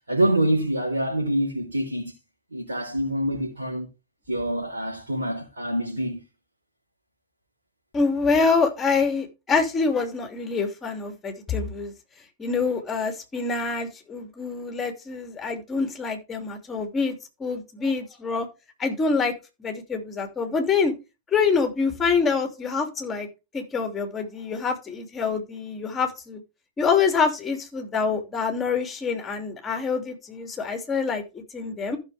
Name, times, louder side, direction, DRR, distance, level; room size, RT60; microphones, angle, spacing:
voice 1, 0.1-2.1 2.5-3.8 4.3-6.2, right 1 dB, 75° right, 4.1 m, -25 dB
voice 2, 7.9-11.9 12.4-17.1 17.4-18.5 18.8-19.3 19.6-20.9 21.3-23.3 23.5-26.4 26.8-32.0, left 5 dB, 20° left, 2.8 m, -26 dB
14.5 x 6.4 x 3.5 m
figure-of-eight pair, 95°, 0 cm